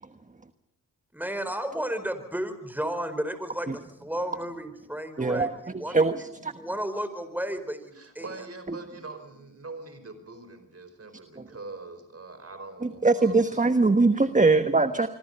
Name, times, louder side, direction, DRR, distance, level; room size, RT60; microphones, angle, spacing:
voice 1, 1.1-6.0 6.6-8.5, equal, 5° right, 10 dB, 4.5 m, -33 dB
voice 2, 5.2-6.5 8.7-8.8 11.4-11.5 12.8-15.1, right 3 dB, 20° right, 9 dB, 1.3 m, -22 dB
voice 3, 8.0-14.1, right 3 dB, 45° right, 9 dB, 5.1 m, -43 dB
26.0 x 23.0 x 5.6 m, 0.78 s
cardioid pair, 55°, 35 cm